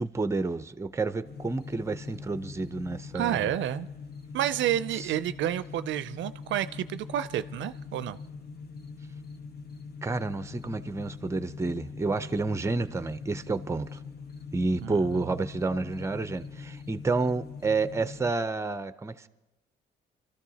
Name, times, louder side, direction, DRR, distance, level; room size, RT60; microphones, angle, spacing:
voice 1, 0.0-3.5 5.0-5.1 10.0-14.0 14.5-19.3, right 3 dB, 15° right, 12 dB, 0.5 m, -30 dB
sound 1, 1.2-18.3, left 5 dB, 50° left, 1.0 m, -43 dB
voice 2, 3.1-3.9 4.3-8.2 14.8-15.3, right 12 dB, 70° right, 14 dB, 0.4 m, -30 dB
24.0 x 13.5 x 2.8 m, 1.1 s
cardioid pair, 90°, 20 cm